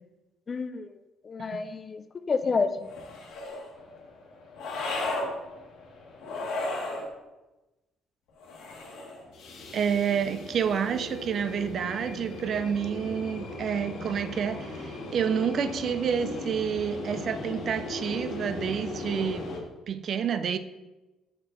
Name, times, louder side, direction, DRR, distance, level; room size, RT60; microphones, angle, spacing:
voice 1, 0.5-0.9 1.2-2.9, left 4 dB, 30° left, 11 dB, 0.4 m, -29 dB
sound 1, 2.8-3.7 4.6-5.3 6.2-7.1 8.4-9.2, left 2 dB, 80° left, 1.3 m, -33 dB
sound 2, 3.7-6.9 9.2-19.6, left 2 dB, 65° left, 1.3 m, -39 dB
voice 2, 9.7-19.5 19.9-20.6, right 7 dB, 50° right, 11 dB, 0.4 m, -29 dB
6.5 x 4.4 x 3.8 m, 1.1 s
cardioid pair, 125°, 0 cm